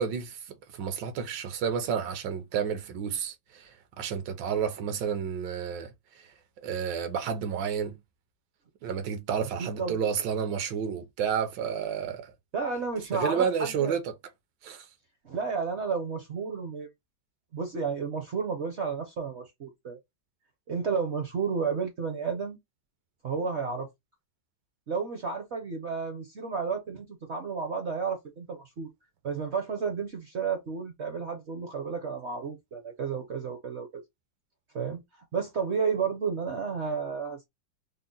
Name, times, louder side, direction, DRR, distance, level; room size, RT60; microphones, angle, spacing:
voice 1, 0.0-6.3 6.6-8.0 8.8-12.3 13.1-14.0 14.6-14.9, right 7 dB, 80° right, 1.4 m, -31 dB
voice 2, 9.6-10.0 12.5-14.0 15.2-16.9 17.5-20.0 20.7-22.6 23.2-23.9 24.9-28.9 29.2-34.0 34.7-35.0 35.3-37.5, right 5 dB, 60° right, 0.7 m, -32 dB
3.7 x 2.1 x 3.8 m
omnidirectional pair, 2.0 m